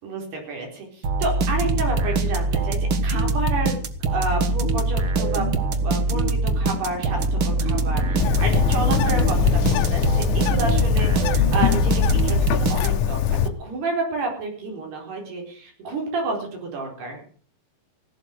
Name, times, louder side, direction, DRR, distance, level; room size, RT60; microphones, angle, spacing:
voice 1, 0.0-3.8 4.1-5.5 5.8-17.2, right 3 dB, 90° right, 1 dB, 6.5 m, -30 dB
sound 1, 1.0-13.2, right 2 dB, 60° right, 1.4 m, -23 dB
sound 2, 5.7-12.2, left 2 dB, ahead, 3.2 m, -37 dB
Bird, 8.2-13.5, left 10 dB, 65° left, 2.2 m, -22 dB
16.5 x 12.0 x 6.6 m, 0.43 s
omnidirectional pair, 4.5 m